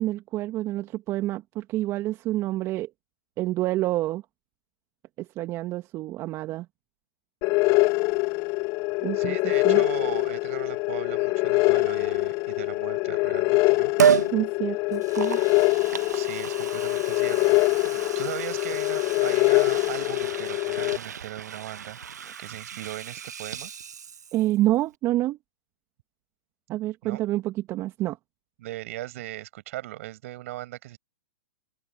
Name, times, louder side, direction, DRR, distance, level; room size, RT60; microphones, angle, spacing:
voice 1, 0.0-2.9 3.4-4.2 5.2-6.7 9.0-9.4 9.6-9.8 14.3-15.4 24.3-25.4 26.7-28.2, right 16 dB, 30° right, 2.4 m, -28 dB
sound 1, 7.4-21.0, left 25 dB, 35° left, 0.7 m, -24 dB
voice 2, 9.1-13.9 16.1-22.0 22.4-23.7 27.0-27.2 28.6-31.0, right 16 dB, 55° right, 6.6 m, -38 dB
Liquid, 14.0-14.3 14.9-24.6 24.9-25.0, right 8 dB, 75° right, 1.3 m, -30 dB
open air
hypercardioid pair, 120°, 9 cm